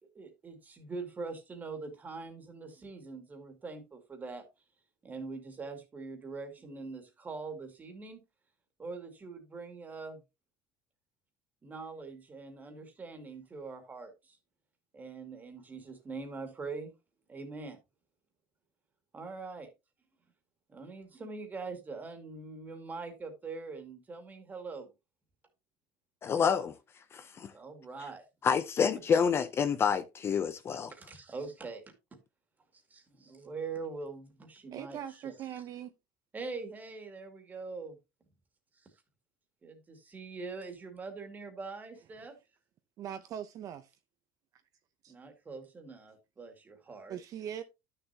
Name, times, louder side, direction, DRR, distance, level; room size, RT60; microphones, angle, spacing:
voice 1, 0.0-4.4 5.0-8.2 8.8-10.2 11.6-14.4 14.9-16.9 17.3-17.8 19.1-19.7 20.7-24.9 27.5-28.2 28.8-28.9 30.9-31.8 32.9-35.6 36.3-38.0 38.8-38.9 39.6-42.4 45.1-47.2, right 4 dB, 20° right, 2.2 m, -43 dB
voice 2, 26.2-26.7 27.1-27.5 28.4-30.9, left 6 dB, 30° left, 0.6 m, -28 dB
voice 3, 34.7-35.9 43.0-43.9 45.0-45.1 47.1-47.6, right 9 dB, 40° right, 0.6 m, -41 dB
11.5 x 6.7 x 2.8 m
cardioid pair, 155°, 9 cm